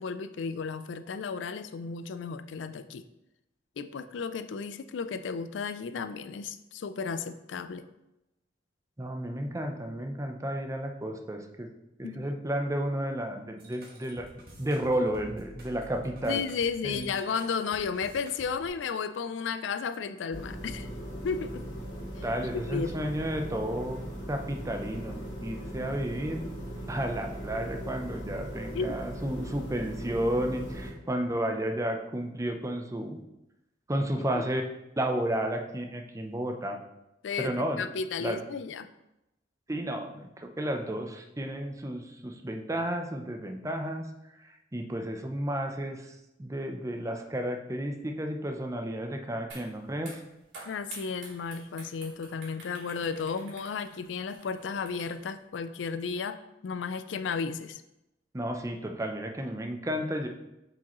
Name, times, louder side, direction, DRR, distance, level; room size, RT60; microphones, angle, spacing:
voice 1, 0.0-3.0 3.8-7.9 12.0-12.3 16.3-20.9 21.2-21.6 22.5-23.0 25.8-25.9 28.7-28.9 34.2-34.4 37.2-38.9 50.7-57.8, left 5 dB, 75° left, 11 dB, 0.4 m, -34 dB
voice 2, 9.0-11.7 12.0-14.3 14.6-16.4 16.8-17.1 22.2-24.0 24.3-26.5 26.9-33.2 33.9-34.6 35.0-36.8 37.4-37.8 38.2-38.4 39.7-44.1 44.7-46.0 46.4-50.1 58.3-60.3, right 1 dB, 15° right, 4 dB, 0.6 m, -32 dB
sound 1, 13.6-18.7, right 1 dB, 55° right, 1.6 m, -49 dB
sound 2, 20.3-30.9, equal, 90° left, 2.1 m, -39 dB
sound 3, 49.5-49.7 50.0-55.4, right 2 dB, 70° right, 2.5 m, -48 dB
7.4 x 5.0 x 3.0 m, 0.90 s
head